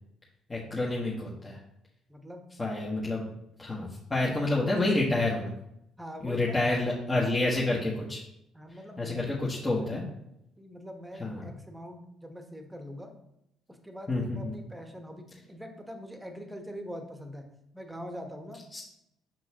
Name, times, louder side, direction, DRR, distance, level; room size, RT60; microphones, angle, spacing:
voice 1, 0.5-1.6 2.6-3.3 3.6-5.5 6.2-8.2 9.0-10.0 11.2-11.4 14.1-14.5 18.7-18.8, left 2 dB, 20° left, -5 dB, 1.5 m, -28 dB
voice 2, 2.1-2.5 6.0-6.6 8.5-9.9 10.6-13.2 13.7-17.5 17.7-18.6, equal, 5° right, 5 dB, 1.3 m, -43 dB
7.0 x 6.2 x 3.0 m, 0.81 s
figure-of-eight pair, 50°, 0 cm